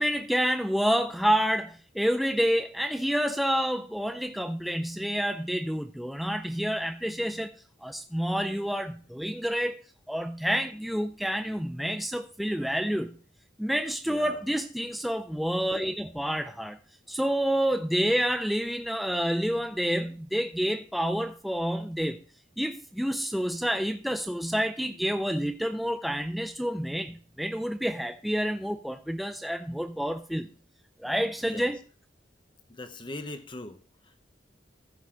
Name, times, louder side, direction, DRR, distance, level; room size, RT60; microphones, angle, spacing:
voice 1, 0.0-7.5 7.8-9.8 10.1-13.1 13.6-16.8 17.1-22.2 22.6-30.5 31.0-31.8, equal, ahead, 0.4 m, -28 dB
voice 2, 14.1-14.4 31.4-31.7 32.7-33.8 34.0-34.2, left 2 dB, 25° left, 1.0 m, -40 dB
14.5 x 5.4 x 3.8 m
head